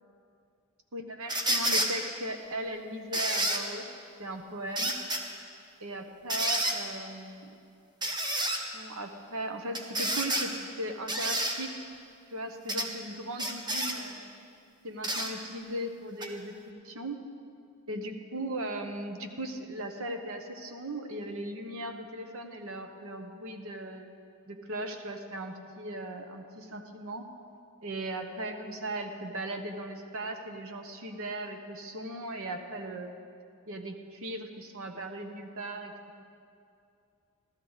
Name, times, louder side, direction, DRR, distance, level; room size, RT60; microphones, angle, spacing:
voice 1, 0.9-3.8 4.2-4.9 5.8-7.5 8.6-11.8 12.3-14.3 14.8-17.2 17.9-24.2 24.5-27.3 27.8-33.1 33.7-36.2, right 1 dB, 65° right, 5 dB, 1.0 m, -38 dB
sound 1, 1.3-1.9 3.1-3.6 4.7-5.2 6.3-6.8 8.0-8.6 9.7-10.5 11.1-11.5 12.7-12.9 13.4-14.0 15.0-15.3 16.2-16.3, right 1 dB, 20° right, 1.0 m, -29 dB
15.0 x 12.5 x 4.0 m, 2.4 s
head